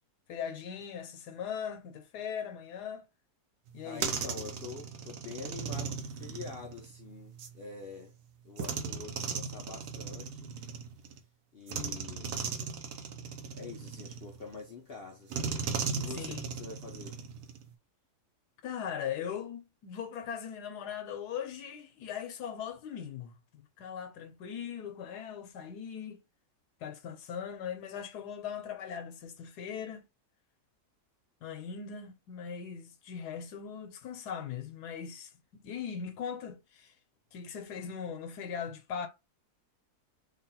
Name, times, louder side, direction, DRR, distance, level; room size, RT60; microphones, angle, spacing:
voice 1, 0.3-3.0 3.7-4.1 16.1-16.5 18.6-26.2 26.8-30.1 31.4-36.9 37.3-39.1, left 8 dB, 85° left, 1.3 m, -40 dB
sound 1, 3.7-7.6 8.6-11.2 11.7-14.6 15.3-17.7, right 6 dB, 80° right, 1.2 m, -37 dB
voice 2, 3.8-8.1 8.4-10.5 11.5-12.4 13.5-15.6 15.9-17.2, left 4 dB, 60° left, 0.6 m, -46 dB
3.5 x 2.3 x 4.0 m
omnidirectional pair, 1.7 m